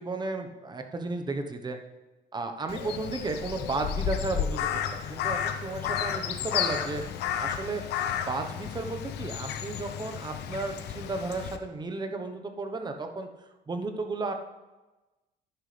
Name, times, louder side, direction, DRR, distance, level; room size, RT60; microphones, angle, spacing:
voice 1, 0.0-1.8 2.3-7.0 7.4-7.8 8.3-13.3 13.7-14.3, right 3 dB, 25° right, 5 dB, 1.1 m, -33 dB
Crow, 2.7-11.6, left 9 dB, 80° left, 0.9 m, -32 dB
11.0 x 10.5 x 3.4 m, 1.1 s
cardioid pair, 110°, 17 cm